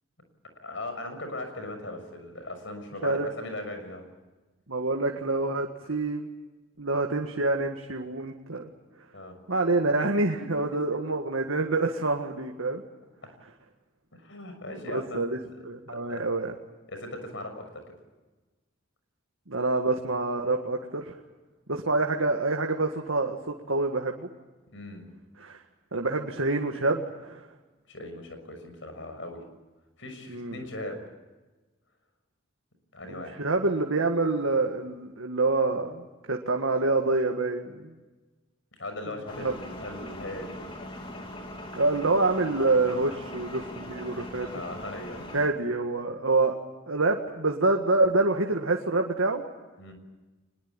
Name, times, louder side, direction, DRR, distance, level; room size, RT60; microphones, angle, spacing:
voice 1, 0.6-4.0 9.1-9.3 10.9-11.0 14.1-15.6 15.9-16.2 16.9-17.9 24.7-25.1 27.9-29.4 30.0-31.0 32.9-33.4 38.8-40.7 42.9-43.2 44.5-45.3 49.8-49.9, left 1 dB, 70° left, 6 dB, 6.4 m, -39 dB
voice 2, 4.7-6.3 6.8-8.7 9.5-12.8 14.7-15.4 15.6-16.5 19.5-21.1 21.7-24.3 25.4-25.6 25.9-27.5 30.3-30.6 33.1-37.9 39.4-39.5 41.7-44.5 45.3-46.6 46.9-49.4, right 2 dB, 85° right, 2 dB, 1.9 m, -27 dB
sound 1, 39.3-45.5, left 1 dB, 25° left, 2.7 m, -41 dB
24.5 x 21.5 x 8.9 m, 1.2 s
head